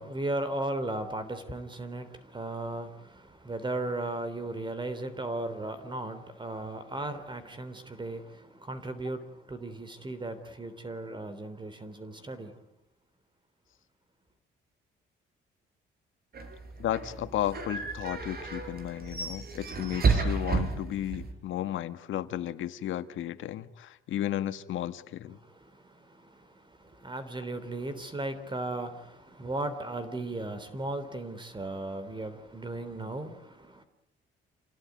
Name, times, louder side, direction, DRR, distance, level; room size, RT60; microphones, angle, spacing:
voice 1, 0.0-12.6 25.4-33.8, right 2 dB, 25° right, 11 dB, 3.3 m, -36 dB
sound 1, 16.3-21.3, right 4 dB, 50° right, 5.5 m, -31 dB
voice 2, 16.8-25.4, left 12 dB, 80° left, 11 dB, 1.7 m, -34 dB
28.0 x 18.0 x 9.5 m, 0.88 s
cardioid pair, 90°, 20 cm